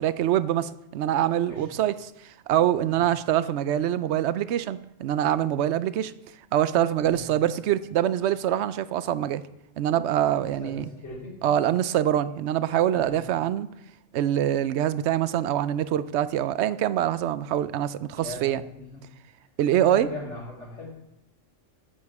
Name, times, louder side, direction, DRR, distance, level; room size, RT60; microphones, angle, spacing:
voice 1, 0.0-2.1 2.5-6.1 6.5-9.4 9.8-10.9 11.4-13.7 14.1-18.6 19.6-20.1, right 11 dB, 70° right, 15 dB, 0.8 m, -24 dB
voice 2, 10.4-11.4 12.9-13.4 18.1-19.0 19.7-20.9, left 2 dB, 70° left, -10 dB, 3.8 m, -39 dB
11.5 x 9.4 x 4.8 m, 0.86 s
omnidirectional pair, 1.3 m